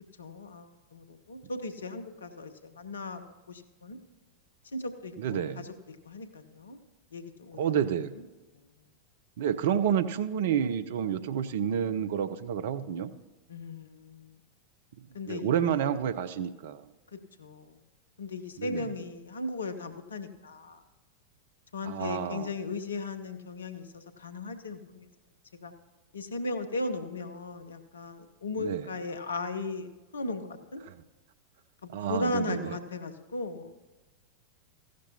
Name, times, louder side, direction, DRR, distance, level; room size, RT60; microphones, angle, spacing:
voice 1, 0.2-3.2 3.5-4.0 4.7-6.8 7.1-7.8 8.1-8.3 13.5-14.4 15.1-16.0 17.4-17.8 18.2-20.8 21.7-25.1 25.6-25.7 26.1-30.8 31.8-33.7, left 2 dB, 70° left, 10 dB, 0.7 m, -37 dB
voice 2, 5.2-5.6 7.6-8.1 9.4-13.1 15.3-16.9 18.6-18.9 21.8-22.5 28.6-28.9 30.9-31.0 31.9-32.6, right 9 dB, 55° right, 14 dB, 0.5 m, -29 dB
15.0 x 11.5 x 2.8 m, 1.2 s
figure-of-eight pair, 90°, 0 cm